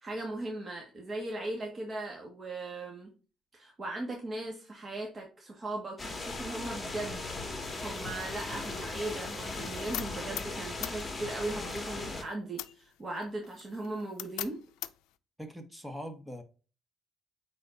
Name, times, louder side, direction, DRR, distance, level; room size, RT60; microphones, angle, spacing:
voice 1, 0.0-3.1 3.5-7.3 7.8-14.6, right 2 dB, 35° right, 1.8 m, -38 dB
sound 1, 6.0-12.2, left 3 dB, 20° left, 2.2 m, -38 dB
sound 2, 7.6-15.2, left 15 dB, 85° left, 0.4 m, -44 dB
voice 2, 15.4-16.4, equal, 5° right, 1.7 m, -42 dB
8.7 x 4.2 x 2.7 m
supercardioid pair, 70°, 0 cm